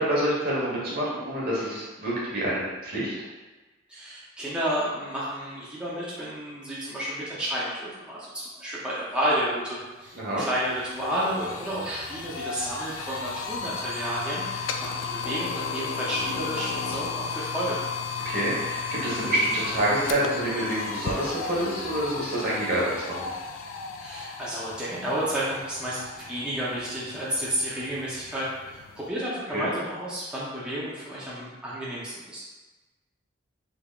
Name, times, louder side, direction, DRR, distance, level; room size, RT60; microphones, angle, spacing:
voice 1, 0.0-3.1 10.1-10.4 18.2-23.3 29.5-29.7, right 1 dB, 55° right, -6 dB, 1.1 m, -27 dB
voice 2, 3.9-17.8 24.0-32.4, right 1 dB, 5° right, -9 dB, 0.6 m, -31 dB
sound 1, 9.7-9.8 10.1-29.1, left 5 dB, 75° left, 0.3 m, -35 dB
3.5 x 3.4 x 2.4 m, 1.2 s
head